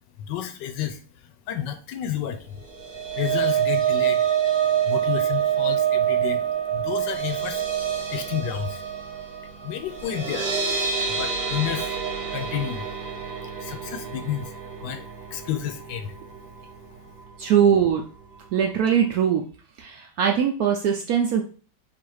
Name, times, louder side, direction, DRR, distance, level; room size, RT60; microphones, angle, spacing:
voice 1, 0.2-2.6 3.1-4.2 4.9-6.4 6.7-7.6 8.1-8.8 9.6-10.5 11.1-11.9 12.3-12.9 13.6-15.1 15.3-16.3, left 10 dB, 75° left, 8 dB, 1.2 m, -31 dB
sound 1, 2.6-16.8 17.2-17.4 17.7-17.8, right 9 dB, 40° right, 1.1 m, -27 dB
voice 2, 17.4-18.0 18.5-19.4 19.8-21.4, right 8 dB, 75° right, 2 dB, 0.8 m, -21 dB
3.8 x 2.5 x 4.7 m, 0.39 s
omnidirectional pair, 2.0 m